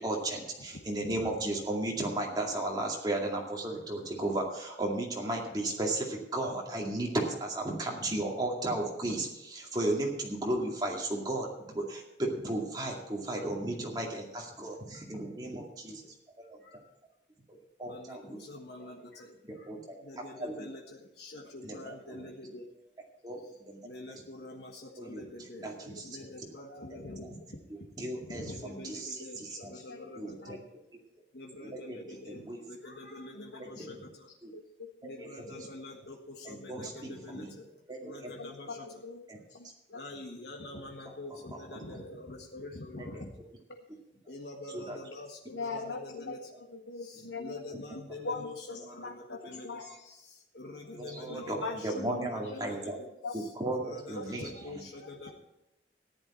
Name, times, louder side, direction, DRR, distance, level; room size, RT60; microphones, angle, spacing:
voice 1, 0.0-16.8 17.5-18.4 18.8-18.9 19.5-20.7 21.6-22.3 23.2-23.4 23.7-23.8 24.1-24.2 25.0-26.2 26.9-27.3 27.7-29.7 30.1-30.6 30.9-31.0 31.6-32.6 33.6-34.1 34.4-34.5 35.0-35.7 36.4-37.5 37.9-38.3 39.3-39.4 41.3-42.0 43.0-43.1 44.7-45.0 47.2-47.3 51.0-53.0 53.3-54.9, right 1 dB, 20° right, -1 dB, 2.2 m, -35 dB
voice 2, 0.6-1.3 16.6-16.8 17.8-19.7 20.0-22.7 23.8-27.3 28.2-30.5 31.3-34.3 35.0-39.0 39.9-43.3 44.3-46.5 47.0-55.3, left 2 dB, 65° left, 1 dB, 1.5 m, -46 dB
voice 3, 29.7-30.0 30.4-30.6 33.3-33.5 33.8-34.0 34.5-34.9 38.4-39.2 39.5-40.0 43.7-43.8 45.5-49.4 49.6-50.2 51.3-52.6 53.2-53.3 54.2-54.3, left 3 dB, 85° left, 4 dB, 1.1 m, -41 dB
14.5 x 11.0 x 4.4 m, 0.92 s
head